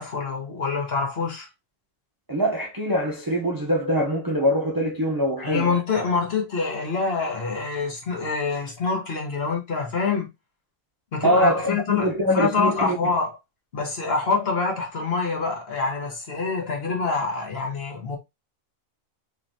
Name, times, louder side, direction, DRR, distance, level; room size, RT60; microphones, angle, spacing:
voice 1, 0.0-1.5 5.4-10.3 11.1-13.4 13.7-18.2, left 4 dB, 50° left, 1.4 m, -26 dB
voice 2, 2.3-5.7 11.2-13.0, equal, 25° right, 0.5 m, -23 dB
3.8 x 3.2 x 2.7 m
omnidirectional pair, 1.4 m